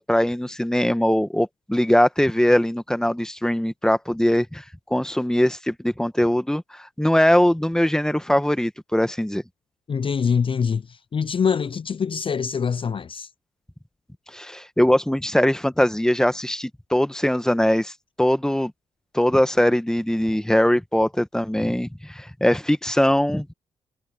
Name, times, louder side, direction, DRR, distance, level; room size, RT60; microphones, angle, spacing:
voice 1, 0.0-4.6 4.9-9.4 14.3-17.9 18.2-18.7 19.1-23.5, left 1 dB, 5° left, 1.5 m, -21 dB
voice 2, 9.9-13.3, left 6 dB, 45° left, 0.5 m, -24 dB
supercardioid pair, 50°, 12 cm